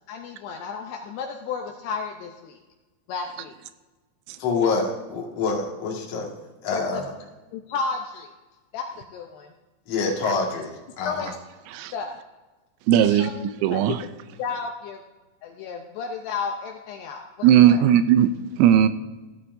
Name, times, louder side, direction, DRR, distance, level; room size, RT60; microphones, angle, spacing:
voice 1, 0.1-2.6 3.1-3.6 6.7-7.0 7.5-8.3 8.7-9.5 11.0-11.3 11.9-12.1 12.9-13.3 13.6-14.1 14.4-15.0 15.4-17.8, left 5 dB, 80° left, 3 dB, 2.4 m, -32 dB
voice 2, 4.4-6.3 6.6-7.1 9.9-11.3, left 4 dB, 50° left, -2 dB, 2.1 m, -26 dB
voice 3, 12.9-13.3 13.6-14.0 17.4-18.3 18.6-18.9, right 10 dB, 85° right, 11 dB, 3.0 m, -17 dB
16.0 x 11.5 x 2.7 m, 1.2 s
omnidirectional pair, 5.6 m